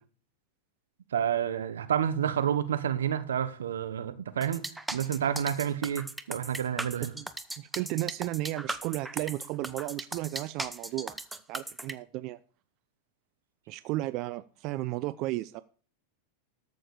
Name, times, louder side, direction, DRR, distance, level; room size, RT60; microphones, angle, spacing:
voice 1, 1.1-4.6 4.9-7.1, right 9 dB, 90° right, 1.2 m, -29 dB
sound 1, 4.4-11.9, right 2 dB, 5° right, 0.9 m, -37 dB
voice 2, 7.6-11.2 11.5-12.4 13.7-15.6, right 17 dB, 50° right, 0.5 m, -34 dB
13.5 x 6.5 x 4.9 m
hypercardioid pair, 120°, 0 cm